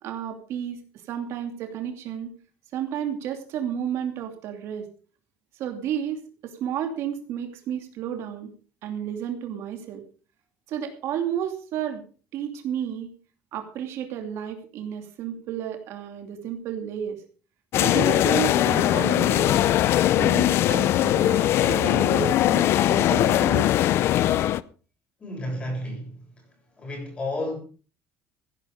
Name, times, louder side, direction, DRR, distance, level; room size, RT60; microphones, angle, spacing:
voice 1, 0.0-0.8 1.1-2.3 2.7-4.9 5.5-8.5 8.8-10.0 10.7-12.0 12.3-13.1 13.5-17.2 17.8-19.7 20.2-23.7, right 9 dB, 60° right, 2.7 m, -32 dB
sound 1, 17.7-24.6, left 13 dB, 55° left, 0.6 m, -21 dB
voice 2, 25.2-26.2 26.8-27.6, left 1 dB, 20° left, 7.2 m, -31 dB
16.0 x 11.0 x 5.1 m
cardioid pair, 170°, 5 cm